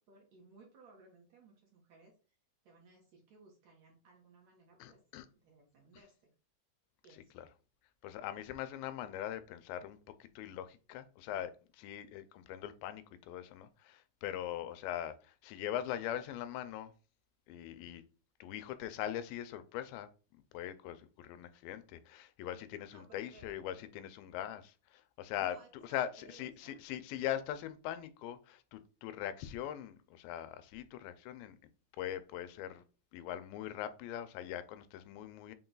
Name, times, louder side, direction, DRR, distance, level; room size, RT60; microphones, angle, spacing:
voice 1, 0.1-2.1 2.6-5.0 5.3-6.3 7.0-7.3 8.2-8.5 22.9-23.5 25.4-26.8, right 3 dB, 70° right, 1.8 m, -61 dB
voice 2, 4.8-5.3 7.1-7.5 8.0-16.9 17.5-18.0 18.4-20.1 20.5-25.6 25.8-31.6 32.0-32.8 33.1-35.5, left 11 dB, 85° left, 2.3 m, -41 dB
5.9 x 2.3 x 3.8 m
omnidirectional pair, 4.1 m